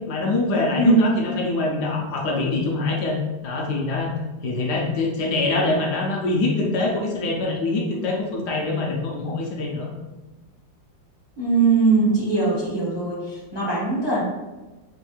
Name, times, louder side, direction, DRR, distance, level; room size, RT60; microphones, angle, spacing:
voice 1, 0.1-4.2 4.4-9.9, left 2 dB, 70° left, -1 dB, 1.2 m, -24 dB
voice 2, 11.4-14.2, right 3 dB, 30° right, -7 dB, 0.4 m, -20 dB
5.2 x 2.9 x 2.3 m, 1.2 s
omnidirectional pair, 2.0 m